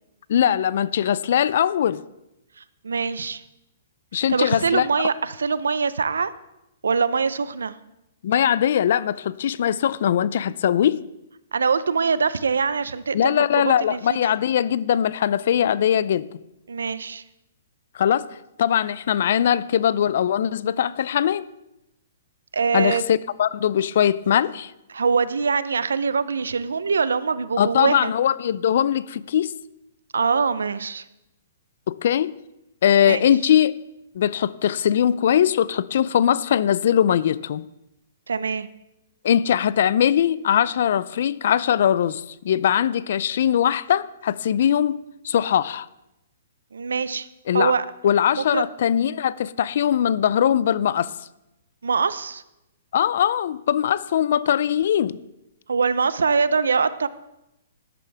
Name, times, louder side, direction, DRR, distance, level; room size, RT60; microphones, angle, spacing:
voice 1, 0.3-2.0 4.1-4.9 8.2-11.0 13.1-16.3 17.9-18.3 18.6-21.5 22.7-24.7 27.6-29.5 31.9-32.3 32.8-33.7 34.1-37.7 39.2-45.0 45.2-45.9 47.5-47.7 48.0-51.1 52.9-55.2, left 9 dB, 60° left, 18 dB, 0.5 m, -21 dB
voice 2, 2.6-3.4 4.3-6.3 6.8-7.8 11.5-14.4 16.7-17.2 22.5-23.0 24.9-28.1 30.1-31.0 33.1-33.3 38.3-38.7 46.7-47.3 47.5-47.8 48.3-48.7 51.8-52.4 55.7-57.1, right 5 dB, 85° right, 16 dB, 0.6 m, -23 dB
13.5 x 11.0 x 3.5 m, 0.89 s
hypercardioid pair, 135°, 0 cm